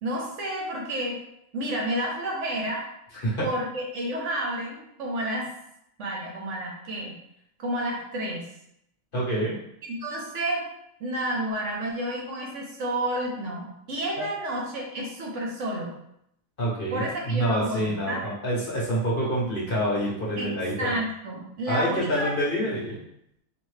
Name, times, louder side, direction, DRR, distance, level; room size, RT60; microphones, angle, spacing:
voice 1, 0.0-1.2 1.5-2.8 3.4-5.5 6.0-7.2 7.6-8.5 9.9-10.6 11.0-15.9 16.9-18.3 20.4-22.3, right 1 dB, 65° right, -1 dB, 1.1 m, -30 dB
voice 2, 9.1-9.5 14.2-14.3 16.6-20.9 21.7-23.0, equal, 45° left, -5 dB, 1.2 m, -27 dB
4.3 x 2.8 x 3.2 m, 0.77 s
omnidirectional pair, 1.4 m